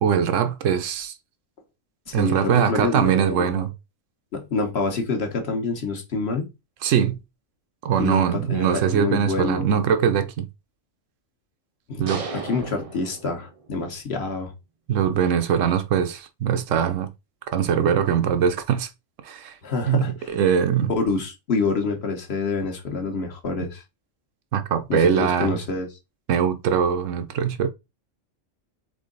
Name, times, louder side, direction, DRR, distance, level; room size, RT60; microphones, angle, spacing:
voice 1, 0.0-1.1 2.1-3.7 6.8-7.2 7.8-10.5 12.0-12.3 14.9-17.1 17.5-18.9 19.2-19.5 19.9-20.9 24.5-25.6 26.3-27.7, right 8 dB, 75° right, 1.0 m, -22 dB
voice 2, 2.1-3.7 4.3-6.5 8.0-9.7 11.9-12.1 12.3-14.5 19.6-20.3 20.9-23.8 24.9-25.9, left 3 dB, 55° left, 1.2 m, -27 dB
sound 1, 12.1-13.9, right 4 dB, 40° right, 0.5 m, -35 dB
3.8 x 3.5 x 3.8 m
omnidirectional pair, 1.4 m